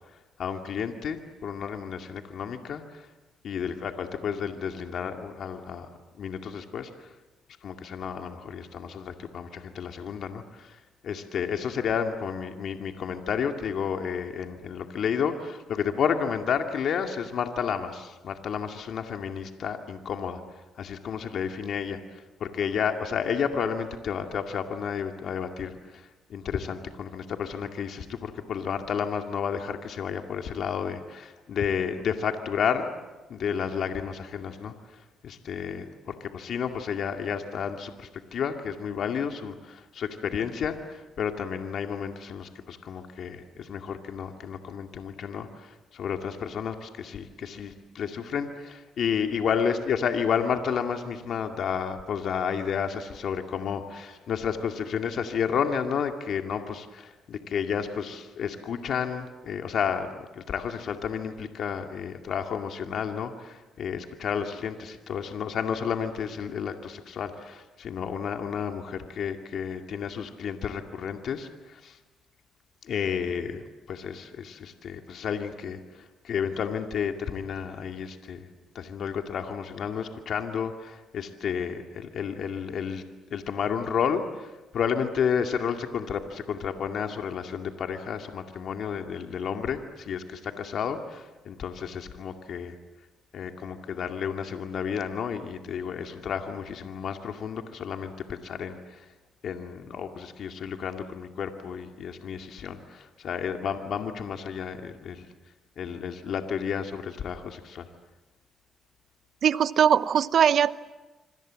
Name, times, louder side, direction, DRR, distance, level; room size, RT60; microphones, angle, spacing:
voice 1, 0.4-3.1 3.4-5.9 6.2-7.1 7.6-20.4 20.8-32.9 33.3-72.0 72.8-78.5 78.7-83.0 83.3-92.8 93.3-99.1 99.4-105.3 105.8-107.9, left 7 dB, 65° left, 5 dB, 2.2 m, -31 dB
voice 2, 109.4-110.8, right 8 dB, 60° right, 15 dB, 0.9 m, -21 dB
26.5 x 25.5 x 7.6 m, 1.1 s
cardioid pair, 90°, 0 cm